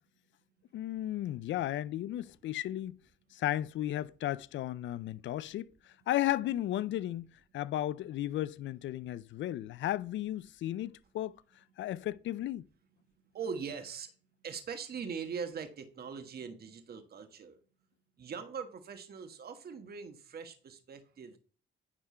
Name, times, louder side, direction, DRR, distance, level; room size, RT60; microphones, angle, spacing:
voice 1, 0.7-3.0 3.3-11.4 11.8-12.7, left 13 dB, 70° left, 0.5 m, -34 dB
voice 2, 13.3-14.1 14.4-17.6 18.2-21.4, right 6 dB, 50° right, 1.4 m, -41 dB
9.9 x 3.8 x 5.7 m
cardioid pair, 90°, 20 cm